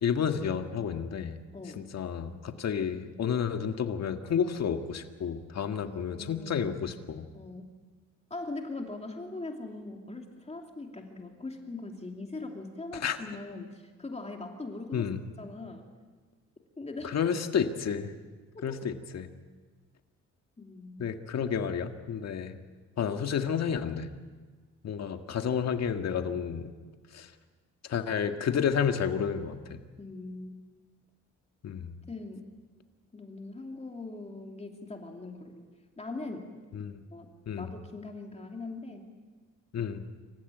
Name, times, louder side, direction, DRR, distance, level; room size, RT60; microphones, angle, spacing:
voice 1, 0.0-1.4 1.8-7.3 12.9-13.2 14.9-15.2 17.0-18.1 18.6-19.3 21.0-22.6 23.0-24.1 24.8-26.7 27.1-27.3 27.8-29.8 31.6-31.9 36.7-37.0 37.5-37.7 39.7-40.0, left 7 dB, 60° left, 6 dB, 1.8 m, -31 dB
voice 2, 1.5-1.9 5.7-6.6 7.3-7.7 8.3-15.1 15.4-15.9 16.8-17.1 18.7-18.8 20.6-21.1 30.0-30.6 32.1-32.5 33.1-35.7 36.0-36.5 37.1-37.3 37.6-39.1, left 2 dB, 20° left, 2 dB, 2.8 m, -41 dB
26.5 x 15.0 x 9.2 m, 1.4 s
cardioid pair, 90°, 30 cm